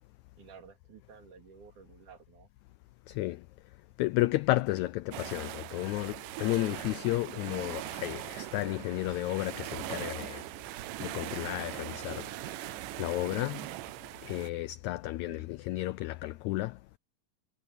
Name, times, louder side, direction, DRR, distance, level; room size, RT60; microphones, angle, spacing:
voice 1, 0.4-2.5 15.3-15.5, right 6 dB, 65° right, 3.8 m, -53 dB
voice 2, 3.1-3.4 4.0-10.4 11.0-12.3 12.6-13.7 14.2-16.8, left 18 dB, 90° left, 1.6 m, -32 dB
sound 1, 5.1-14.5, right 16 dB, 85° right, 2.3 m, -41 dB
omnidirectional pair, 3.8 m